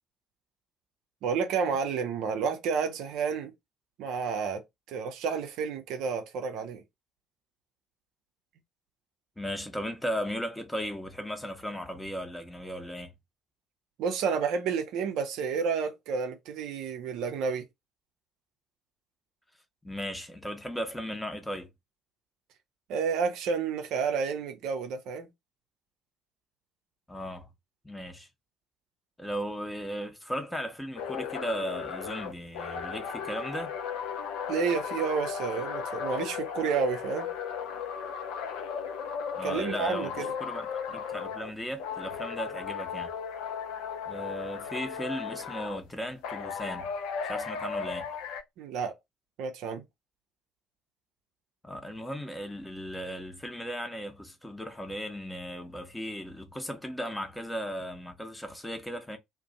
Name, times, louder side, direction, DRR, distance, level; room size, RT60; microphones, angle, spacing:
voice 1, 1.2-3.5 4.0-6.8 14.0-17.6 22.9-25.3 34.5-37.3 39.4-40.3 48.6-48.9 49.4-49.8, right 6 dB, 60° right, 0.5 m, -30 dB
voice 2, 9.4-13.1 19.8-21.7 27.1-27.5 27.8-28.3 29.2-33.8 39.3-43.1 44.1-46.9 47.2-48.1 51.6-59.2, equal, 10° left, 0.8 m, -36 dB
sound 1, 31.0-41.5 41.8-45.8 46.2-48.4, left 7 dB, 60° left, 0.4 m, -36 dB
2.5 x 2.1 x 3.9 m
figure-of-eight pair, 50°, 0 cm